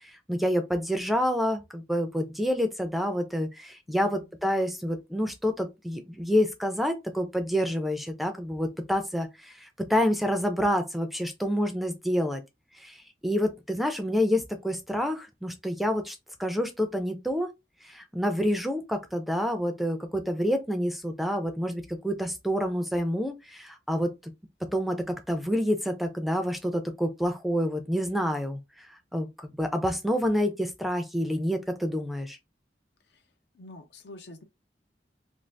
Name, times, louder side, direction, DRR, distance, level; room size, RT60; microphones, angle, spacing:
voice 1, 0.3-12.4 12.8-13.0 13.2-17.5 17.8-24.3 24.7-28.9 29.1-32.4, equal, ahead, 0.4 m, -28 dB
voice 2, 3.9-4.2 33.5-34.4, left 2 dB, 80° left, 0.6 m, -46 dB
2.6 x 2.3 x 3.3 m
head